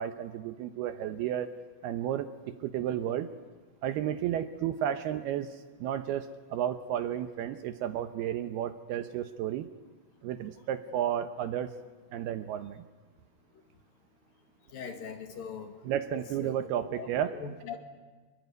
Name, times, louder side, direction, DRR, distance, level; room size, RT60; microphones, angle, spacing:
voice 1, 0.0-1.5 1.8-3.3 3.8-9.7 10.2-11.7 12.1-12.8 15.8-17.3, right 10 dB, 75° right, 10 dB, 2.6 m, -32 dB
voice 2, 14.7-15.7 16.4-16.6 17.0-17.1 17.4-17.8, left 6 dB, 55° left, 6 dB, 3.5 m, -40 dB
27.0 x 22.0 x 9.5 m, 1.4 s
omnidirectional pair, 5.2 m